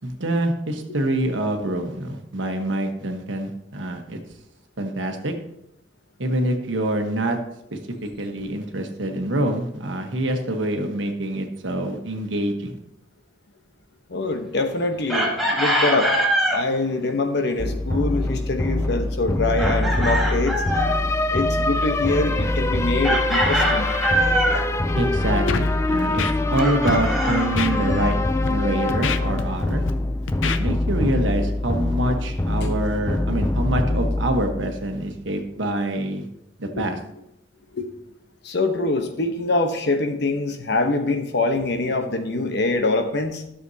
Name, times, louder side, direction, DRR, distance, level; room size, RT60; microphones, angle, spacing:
voice 1, 0.0-4.2 4.8-5.3 6.2-7.4 7.7-12.8 24.9-28.2 28.5-29.8 30.6-36.3 36.6-37.0, right 1 dB, 80° right, 4 dB, 1.2 m, -25 dB
voice 2, 14.1-16.1 16.5-20.6 21.3-23.9 36.6-36.8 37.7-37.9 38.4-43.4, left 2 dB, 60° left, 6 dB, 1.0 m, -24 dB
Chicken rooster, 15.1-16.6 19.6-20.9 23.0-24.7 26.6-28.1, equal, ahead, 1.7 m, -23 dB
sound 1, 17.6-35.2, left 2 dB, 15° left, 0.3 m, -24 dB
Scratching (performance technique), 25.5-25.7 26.0-26.6 26.9-27.0 27.6-27.7 28.3-28.5 28.9-29.9 30.3-30.6, left 6 dB, 90° left, 0.6 m, -28 dB
12.5 x 6.9 x 2.8 m, 0.80 s
head